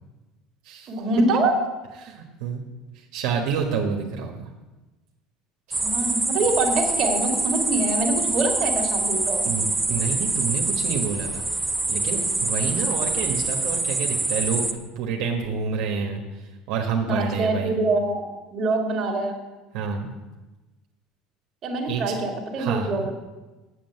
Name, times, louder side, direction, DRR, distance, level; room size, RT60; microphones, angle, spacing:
voice 1, 0.9-1.6 5.8-9.5 17.0-18.2 18.5-19.4 21.6-23.1, right 2 dB, 35° right, 1 dB, 2.1 m, -24 dB
voice 2, 2.0-2.6 2.9-4.4 5.7-5.8 9.4-11.4 11.9-14.6 14.9-17.7 19.7-20.1 21.9-22.2 22.5-23.1, right 6 dB, 70° right, 0 dB, 1.4 m, -28 dB
sound 1, 5.7-14.7, right 3 dB, 10° right, 0.7 m, -25 dB
8.3 x 7.8 x 8.1 m, 1.1 s
cardioid pair, 155°, 0 cm